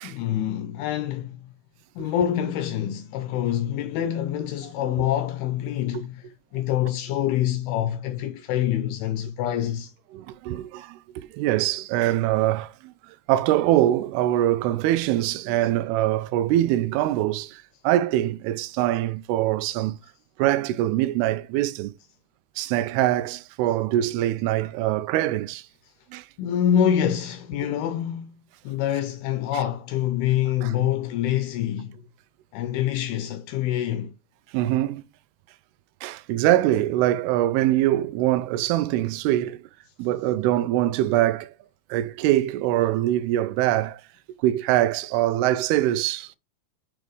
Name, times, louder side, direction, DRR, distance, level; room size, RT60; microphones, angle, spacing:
voice 1, 0.0-1.4 2.0-9.9 26.4-28.4 28.7-32.0 32.5-34.1, left 10 dB, 80° left, 2.4 m, -26 dB
voice 2, 10.1-12.9 13.3-20.0 20.4-21.9 22.6-25.6 26.1-26.2 30.6-30.7 34.5-35.0 36.0-39.6 40.0-41.5 41.9-44.0 44.4-46.3, right 14 dB, 85° right, 2.5 m, -23 dB
7.0 x 4.4 x 3.2 m
omnidirectional pair, 4.8 m